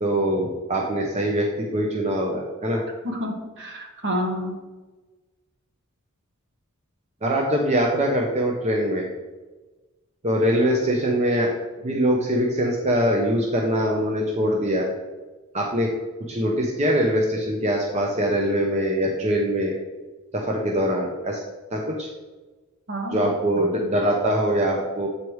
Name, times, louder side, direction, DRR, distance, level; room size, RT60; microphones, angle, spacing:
voice 1, 0.0-2.8 7.2-9.0 10.2-11.5 11.8-14.9 15.5-15.9 16.3-19.7 20.3-21.4 21.7-22.1 23.1-25.1, equal, 30° right, -1 dB, 0.6 m, -23 dB
voice 2, 3.0-4.6 22.9-23.3 23.8-23.9, equal, 55° right, 1 dB, 1.3 m, -29 dB
8.3 x 4.7 x 3.1 m, 1.2 s
head